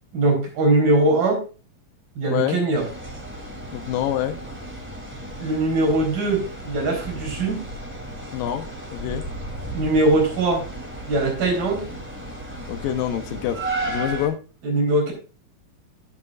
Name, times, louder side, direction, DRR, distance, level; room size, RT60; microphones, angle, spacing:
voice 1, 0.1-1.4 2.2-2.9 5.4-7.6 9.7-10.6 11.1-11.9 14.6-15.1, right 2 dB, 75° right, 5.6 m, -21 dB
voice 2, 2.3-2.6 3.7-4.4 8.3-8.7 8.9-9.2 12.7-14.4, left 11 dB, 80° left, 2.5 m, -26 dB
sound 1, 2.7-14.3, right 1 dB, 5° right, 2.0 m, -34 dB
15.5 x 8.1 x 2.4 m
omnidirectional pair, 4.1 m